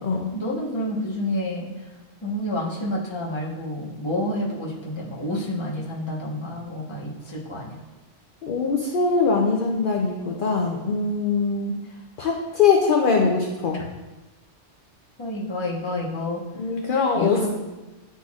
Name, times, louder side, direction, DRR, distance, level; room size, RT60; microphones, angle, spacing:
voice 1, 0.3-1.7 2.2-7.8 15.2-16.4 17.2-17.5, left 1 dB, 25° left, -5 dB, 1.1 m, -29 dB
voice 2, 8.4-11.8 12.2-13.8 16.6-17.5, left 5 dB, 55° left, 0 dB, 0.7 m, -22 dB
10.0 x 4.1 x 2.4 m, 1.1 s
omnidirectional pair, 1.2 m